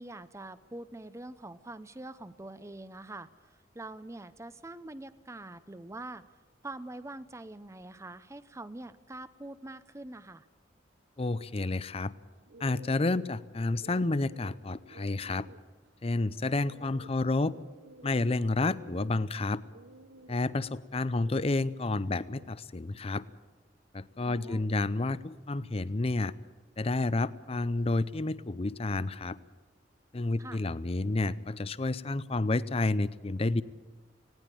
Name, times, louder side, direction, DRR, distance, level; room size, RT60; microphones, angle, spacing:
voice 1, 0.0-6.2 6.6-10.5 24.3-24.7 30.4-30.6, right 2 dB, 15° right, 13 dB, 0.7 m, -44 dB
voice 2, 11.2-12.1 12.6-15.5 16.0-17.5 18.0-19.6 20.3-23.2 23.9-26.3 26.8-29.4 30.1-33.6, left 2 dB, 35° left, 17 dB, 0.6 m, -30 dB
sound 1, 12.3-22.5, right 2 dB, 75° right, 1.1 m, -54 dB
20.0 x 17.0 x 9.1 m, 1.3 s
head